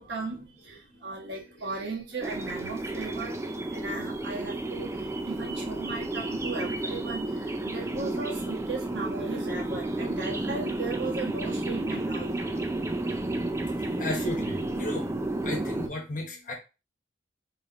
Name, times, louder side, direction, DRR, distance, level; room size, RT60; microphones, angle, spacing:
voice 1, 0.0-3.4 3.7-12.7, right 3 dB, 65° right, -2 dB, 1.4 m, -37 dB
sound 1, 2.2-15.9, right 2 dB, 15° right, 0.4 m, -32 dB
voice 2, 14.0-15.1 15.4-16.5, left 1 dB, 45° left, 2 dB, 1.2 m, -34 dB
4.0 x 3.2 x 3.0 m, 0.29 s
head